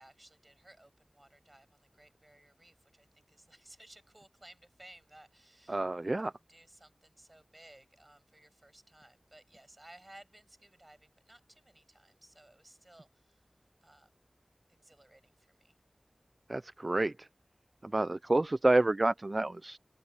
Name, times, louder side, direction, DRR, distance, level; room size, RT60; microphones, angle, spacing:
voice 1, 0.0-13.5 13.8-14.1 14.7-15.8, right 1 dB, 30° right, 6.8 m, -59 dB
voice 2, 5.7-6.3 16.5-17.3 17.8-19.8, right 2 dB, 45° right, 0.3 m, -29 dB
wide cardioid pair, 55°, 0 cm